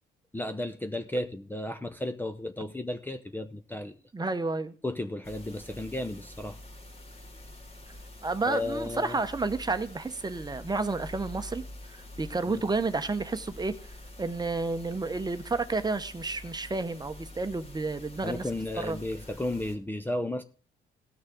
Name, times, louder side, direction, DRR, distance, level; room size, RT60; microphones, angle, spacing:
voice 1, 0.3-4.0 4.8-6.6 8.5-9.2 12.5-12.7 18.2-20.4, left 1 dB, 10° left, 0.6 m, -34 dB
voice 2, 4.1-4.7 8.2-11.6 11.9-13.7 14.2-18.4 18.8-19.0, right 3 dB, 20° right, 0.9 m, -31 dB
sound 1, 5.2-19.8, left 1 dB, 30° left, 2.1 m, -46 dB
17.0 x 6.4 x 3.7 m
cardioid pair, 90°, 20 cm